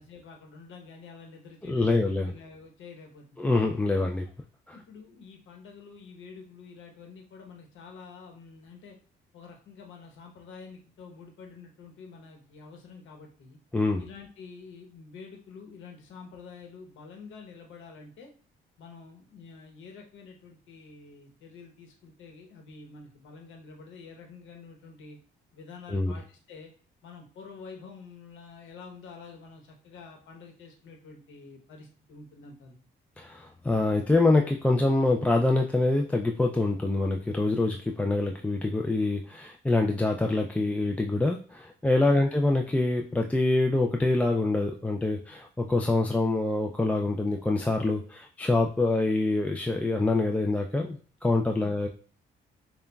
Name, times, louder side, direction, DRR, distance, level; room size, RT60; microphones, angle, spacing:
voice 1, 0.0-3.4 4.0-4.2 4.7-9.0 9.3-13.6 14.0-18.3 18.8-25.2 25.5-26.7 27.0-32.9 42.1-42.3 46.1-46.2 51.6-51.8, left 4 dB, 75° left, 2 dB, 1.0 m, -48 dB
voice 2, 1.7-2.3 3.4-4.2 4.7-4.8 13.7-14.0 25.9-26.1 33.2-51.9, left 2 dB, 5° left, 1 dB, 0.3 m, -25 dB
6.7 x 2.3 x 2.3 m, 0.42 s
cardioid pair, 90°, 20 cm